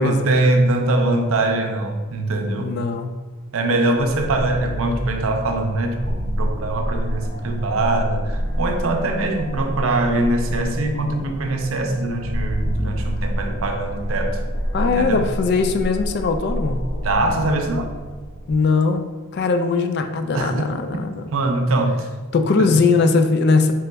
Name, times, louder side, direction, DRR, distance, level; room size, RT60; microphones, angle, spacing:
voice 1, 0.0-2.8 3.5-14.4 14.8-15.3 17.0-17.9 20.3-20.5 21.3-22.1 22.6-22.8, right 2 dB, 80° right, 4 dB, 0.6 m, -22 dB
voice 2, 2.6-3.1 14.7-16.9 18.5-19.1 19.3-21.3 22.3-23.7, left 4 dB, 50° left, 7 dB, 0.3 m, -20 dB
sound 1, 4.0-18.5, equal, 85° left, 1.1 m, -28 dB
3.9 x 3.4 x 3.4 m, 1.4 s
head